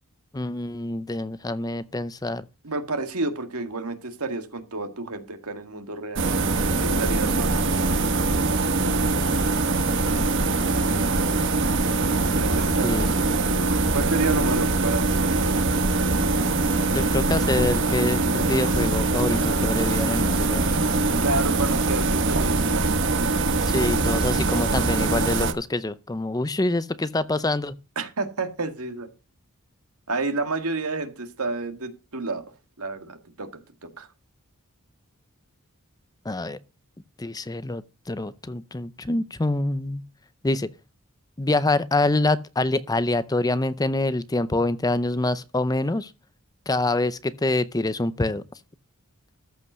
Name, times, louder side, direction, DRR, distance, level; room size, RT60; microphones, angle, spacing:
voice 1, 0.3-2.4 12.8-13.1 16.9-20.7 23.6-27.8 36.2-36.6 37.2-40.0 40.4-40.7 41.4-46.1 46.7-48.4, left 2 dB, 15° left, 0.5 m, -26 dB
voice 2, 2.6-6.3 6.8-7.6 12.2-15.3 21.2-23.1 23.8-23.9 28.0-29.1 30.1-32.4 32.8-33.5 33.8-34.1, right 3 dB, 85° right, 2.0 m, -30 dB
sound 1, 6.1-25.5, right 3 dB, 55° right, 1.3 m, -23 dB
14.0 x 5.5 x 6.2 m
head